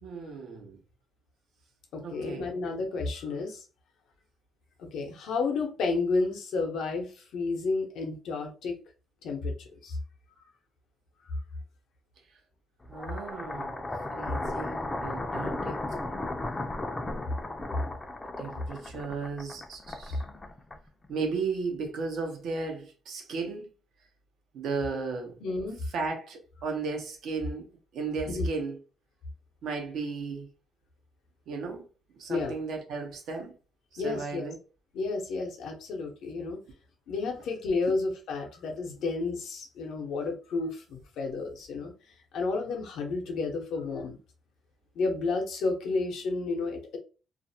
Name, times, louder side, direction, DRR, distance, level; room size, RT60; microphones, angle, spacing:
voice 1, 0.0-0.8 2.0-2.5 12.9-13.8 14.1-15.8 18.4-20.2 21.1-23.7 24.5-25.3 25.9-27.7 27.9-28.8 29.6-30.5 31.5-31.8 32.2-33.5 33.9-34.6 37.9-38.0, right 4 dB, 80° right, 0.7 m, -35 dB
voice 2, 1.9-3.6 4.8-8.8 9.2-10.0 25.4-25.8 28.3-28.5 32.3-32.6 34.0-34.5 34.9-36.6 37.1-41.9 42.3-44.2 44.9-47.0, left 3 dB, 80° left, 0.7 m, -31 dB
sound 1, 12.8-21.1, left 2 dB, 20° left, 0.4 m, -35 dB
2.4 x 2.1 x 2.7 m
cardioid pair, 90°, 0 cm